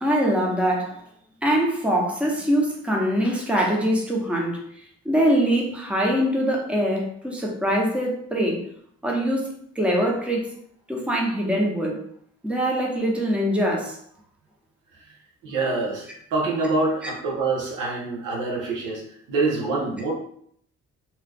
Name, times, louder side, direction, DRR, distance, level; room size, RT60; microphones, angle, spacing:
voice 1, 0.0-1.0 1.4-4.6 5.0-8.6 9.0-10.5 10.9-12.0 12.4-14.0, equal, 5° right, -1 dB, 0.8 m, -23 dB
voice 2, 15.4-19.0 19.3-20.1, right 3 dB, 85° right, -2 dB, 1.0 m, -26 dB
2.9 x 2.3 x 3.4 m, 0.65 s
cardioid pair, 90°, 30 cm